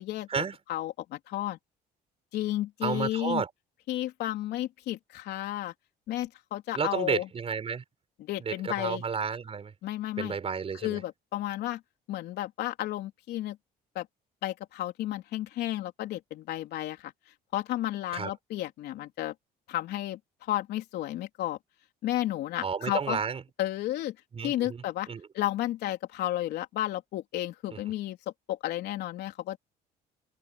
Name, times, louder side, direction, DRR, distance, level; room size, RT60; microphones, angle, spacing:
voice 1, 0.0-0.4 0.7-1.6 2.3-3.4 3.9-5.7 6.1-7.3 8.2-9.0 9.8-10.4 10.8-11.8 12.1-13.6 14.0-14.1 14.4-17.1 17.5-19.3 19.7-21.6 22.0-23.2 23.6-24.2 24.4-25.1 25.3-28.2 28.5-29.6, left 14 dB, 75° left, 3.7 m, -32 dB
voice 2, 2.8-3.5 6.7-7.8 8.4-9.7 10.2-11.0 18.1-18.3 22.6-23.4 24.3-25.2 27.7-27.8, right 6 dB, 35° right, 5.1 m, -32 dB
cardioid pair, 110°, 17 cm